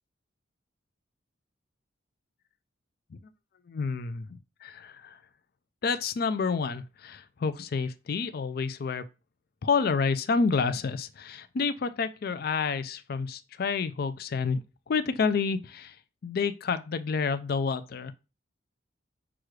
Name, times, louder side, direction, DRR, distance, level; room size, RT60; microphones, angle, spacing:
voice 1, 3.7-4.3 4.6-5.2 5.8-9.1 9.6-16.0 16.2-18.1, left 5 dB, 50° left, 0.4 m, -29 dB
6.0 x 2.4 x 3.1 m
head